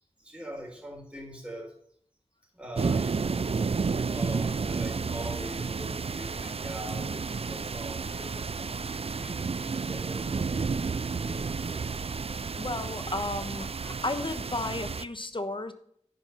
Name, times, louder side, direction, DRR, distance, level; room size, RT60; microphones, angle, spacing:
voice 1, 0.2-1.7 2.5-3.7 4.1-10.8 11.1-11.8, right 1 dB, 10° right, -3 dB, 3.8 m, -43 dB
sound 1, 2.8-15.0, right 5 dB, 60° right, 0.4 m, -31 dB
voice 2, 12.6-15.7, left 2 dB, 45° left, 9 dB, 1.1 m, -33 dB
10.5 x 5.4 x 6.5 m, 0.65 s
wide cardioid pair, 45°, 11 cm